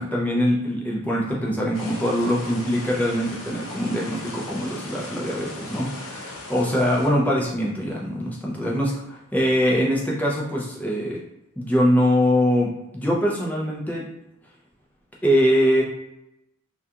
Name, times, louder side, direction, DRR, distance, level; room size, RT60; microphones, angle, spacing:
voice 1, 0.0-11.2 11.6-14.1 15.2-15.8, equal, 5° left, -4 dB, 0.4 m, -23 dB
sound 1, 1.7-7.1, left 2 dB, 65° left, 0.6 m, -38 dB
2.3 x 2.3 x 2.7 m, 0.86 s
head